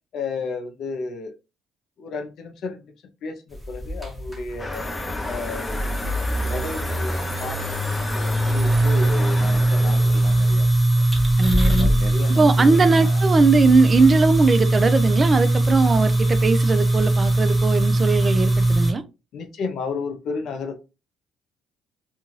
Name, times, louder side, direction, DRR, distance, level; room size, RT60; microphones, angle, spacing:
voice 1, 0.1-1.3 2.0-2.9 3.2-4.9 5.2-5.9 6.4-10.8 11.6-13.2 19.3-20.8, left 4 dB, 65° left, 0.6 m, -33 dB
sound 1, 3.5-18.9, right 1 dB, 5° right, 1.1 m, -21 dB
sound 2, 4.6-10.5, left 2 dB, 20° left, 0.5 m, -32 dB
voice 2, 11.4-11.9 12.3-19.0, right 4 dB, 35° right, 0.4 m, -19 dB
2.5 x 2.3 x 3.1 m
cardioid pair, 85°, 0 cm